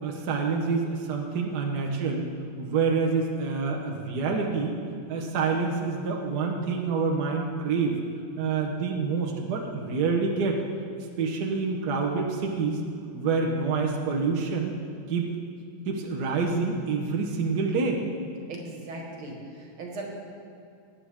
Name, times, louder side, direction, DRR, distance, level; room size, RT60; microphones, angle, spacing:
voice 1, 0.0-2.3 2.6-4.8 5.1-8.0 8.4-10.6 11.2-12.8 13.1-14.8 15.1-15.3 15.8-18.0, right 4 dB, 55° right, 0 dB, 1.5 m, -27 dB
voice 2, 18.5-20.1, right 2 dB, 80° right, 0 dB, 2.6 m, -38 dB
19.5 x 8.7 x 3.6 m, 2.4 s
omnidirectional pair, 2.2 m